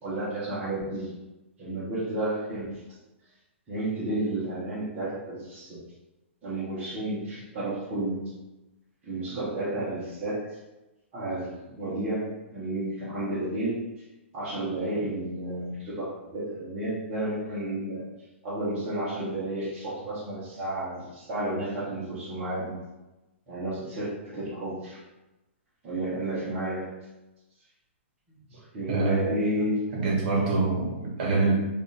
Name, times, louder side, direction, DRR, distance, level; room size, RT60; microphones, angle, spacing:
voice 1, 0.0-1.1 1.6-2.8 3.7-5.8 6.4-8.3 9.0-10.6 11.1-14.0 14.3-18.1 18.4-22.8 23.5-25.0 25.8-26.9 28.3-30.0, right 1 dB, 15° right, -12 dB, 0.9 m, -32 dB
voice 2, 28.9-29.4 29.9-31.6, right 3 dB, 35° right, -3 dB, 1.2 m, -25 dB
4.8 x 2.5 x 3.2 m, 1.0 s
hypercardioid pair, 175°, 7 cm